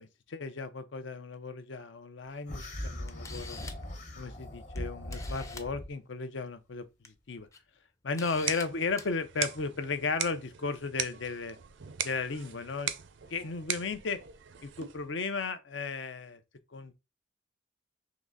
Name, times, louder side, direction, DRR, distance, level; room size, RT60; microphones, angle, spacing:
voice 1, 0.0-3.6 4.2-6.8 7.3-7.5 8.0-11.6 12.0-12.9 13.3-14.2 14.6-16.4 16.7-16.9, left 4 dB, 80° left, 0.6 m, -35 dB
sound 1, 2.5-5.9, left 1 dB, 40° left, 1.0 m, -40 dB
Camera, 2.6-2.7 3.1-3.9 4.7-4.8 5.1-5.7 6.8-7.1 7.5-7.6 8.2-8.6 9.0-9.1, left 4 dB, 15° left, 0.5 m, -45 dB
sound 2, 8.2-15.1, right 9 dB, 75° right, 0.5 m, -39 dB
3.8 x 3.1 x 3.7 m
head